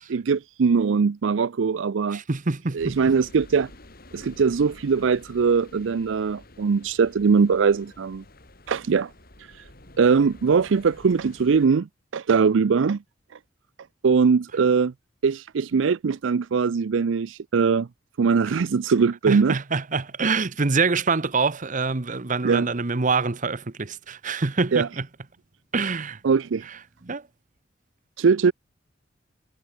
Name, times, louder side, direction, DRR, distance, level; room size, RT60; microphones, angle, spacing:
voice 1, 0.1-2.2 2.7-3.7 4.1-8.2 8.7-9.1 10.0-11.9 12.1-13.0 14.0-14.9 15.2-17.9 18.2-19.6 22.4-22.7 24.7-24.9 26.2-26.6 28.2-28.5, right 5 dB, 75° right, 0.5 m, -21 dB
voice 2, 2.1-3.0 19.3-25.1 25.7-26.2 26.7-26.8 27.0-27.2, right 4 dB, 40° right, 0.9 m, -25 dB
sound 1, 2.8-11.7, left 1 dB, 50° left, 5.5 m, -49 dB
head